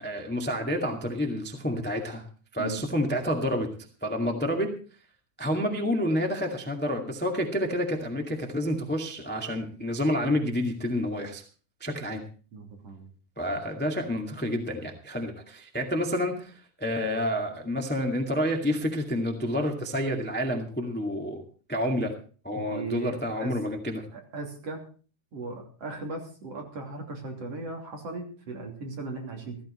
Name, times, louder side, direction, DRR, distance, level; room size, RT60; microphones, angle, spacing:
voice 1, 0.0-2.2 2.5-3.7 4.0-4.7 5.4-11.4 11.8-12.2 13.4-21.4 21.7-22.1 22.4-24.0, equal, 5° left, 3 dB, 0.8 m, -29 dB
voice 2, 12.5-13.1 22.5-23.5 24.1-24.8 25.3-29.6, right 3 dB, 45° right, 1 dB, 3.8 m, -37 dB
15.0 x 14.5 x 4.3 m, 0.38 s
omnidirectional pair, 4.1 m